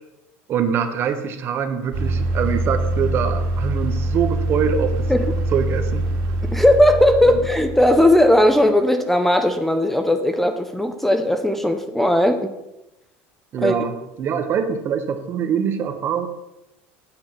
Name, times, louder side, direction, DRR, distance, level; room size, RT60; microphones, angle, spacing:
voice 1, 0.5-5.1 5.5-6.1 7.3-7.4 13.5-16.3, right 7 dB, 40° right, 7 dB, 1.2 m, -24 dB
sound 1, 1.9-8.5, right 1 dB, 70° right, 2.3 m, -24 dB
voice 2, 6.5-12.5 13.6-13.7, left 1 dB, 5° left, 7 dB, 0.7 m, -17 dB
9.0 x 6.1 x 5.9 m, 0.94 s
supercardioid pair, 125°, 6 cm